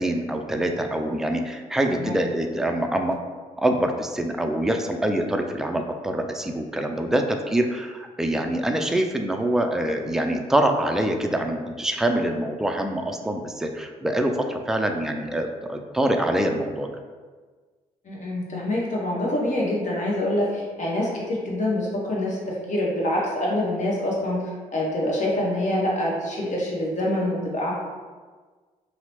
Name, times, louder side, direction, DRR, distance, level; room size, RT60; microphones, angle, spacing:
voice 1, 0.0-3.2 3.6-16.9, right 1 dB, 5° right, 4 dB, 0.3 m, -25 dB
voice 2, 18.0-24.4 24.7-27.7, left 1 dB, 50° left, -4 dB, 0.9 m, -26 dB
2.9 x 2.0 x 2.9 m, 1.4 s
supercardioid pair, 50°, 16 cm